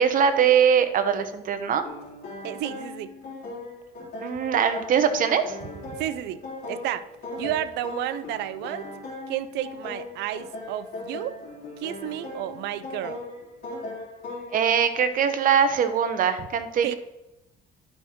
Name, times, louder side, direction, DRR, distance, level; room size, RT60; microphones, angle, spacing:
voice 1, 0.0-1.8 4.2-5.6 14.5-17.0, right 7 dB, 55° right, 10 dB, 0.9 m, -22 dB
sound 1, 1.8-14.6, left 2 dB, 60° left, 3.5 m, -38 dB
voice 2, 2.4-3.1 6.0-6.4 6.7-7.1 7.4-8.9 9.3-11.4 11.8-13.2 16.8-17.0, right 12 dB, 85° right, 15 dB, 0.5 m, -31 dB
11.0 x 6.1 x 3.7 m, 0.94 s
cardioid pair, 110°, 17 cm